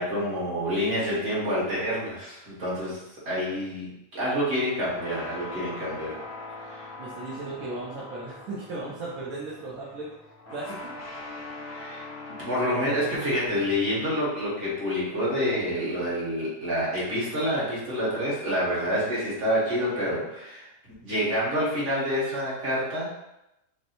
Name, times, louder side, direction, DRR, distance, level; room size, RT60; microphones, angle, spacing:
voice 1, 0.0-6.2 6.7-6.9 11.7-12.0 12.4-20.7 21.0-23.1, equal, 60° right, -7 dB, 1.8 m, -28 dB
sound 1, 4.4-13.5, left 2 dB, 25° left, 0.3 m, -42 dB
voice 2, 7.0-10.1 10.5-10.9, right 2 dB, 80° right, -6 dB, 1.2 m, -36 dB
6.2 x 2.1 x 2.9 m, 0.90 s
omnidirectional pair, 1.5 m